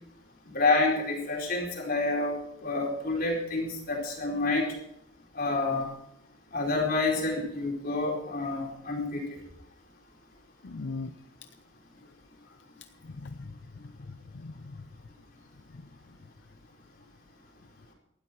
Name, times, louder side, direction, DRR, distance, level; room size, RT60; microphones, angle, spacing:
voice 1, 0.5-4.7 5.3-5.9 6.5-9.4, left 3 dB, 55° left, -1 dB, 4.5 m, -28 dB
voice 2, 10.6-11.1 13.0-14.9 15.7-15.8, left 3 dB, 80° left, 9 dB, 0.7 m, -40 dB
18.5 x 13.0 x 4.6 m, 0.80 s
head